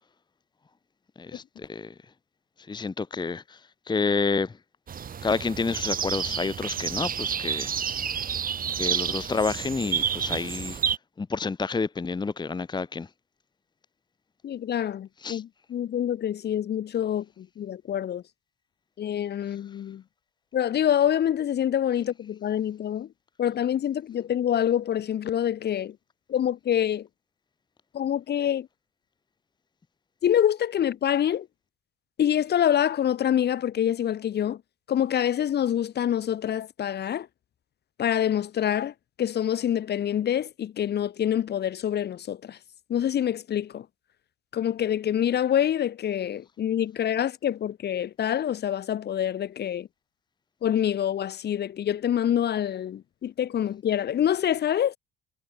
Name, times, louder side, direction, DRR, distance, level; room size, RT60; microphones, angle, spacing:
voice 1, 1.2-1.9 2.6-4.6 5.2-7.7 8.0-8.1 8.7-10.8 11.2-13.1 15.2-15.4 19.5-19.6, left 4 dB, 20° left, 1.1 m, -29 dB
sound 1, 4.9-11.0, right 7 dB, 45° right, 3.3 m, -29 dB
voice 2, 14.4-18.2 19.0-20.0 20.5-23.1 23.4-26.0 26.3-27.1 27.9-28.7 30.2-31.5 32.2-34.6 34.9-37.3 38.0-42.6 42.9-43.9 44.5-49.9 50.6-54.9, left 10 dB, 50° left, 2.5 m, -26 dB
supercardioid pair, 70°, 21 cm